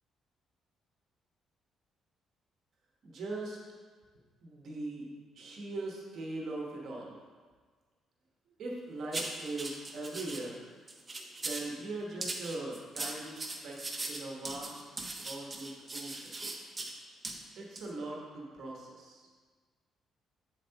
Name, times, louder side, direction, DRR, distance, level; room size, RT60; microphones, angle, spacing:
voice 1, 3.0-3.6 4.4-5.1 5.3-7.2 8.6-10.6 11.4-13.8 14.1-14.8 15.2-16.3 17.6-19.2, right 2 dB, 55° right, -2 dB, 1.2 m, -40 dB
sound 1, 9.1-10.4 10.9-11.7 12.2-16.9 17.2-17.4 17.8-17.9, right 2 dB, 20° right, 0.7 m, -39 dB
7.8 x 7.3 x 2.9 m, 1.5 s
cardioid pair, 150°, 0 cm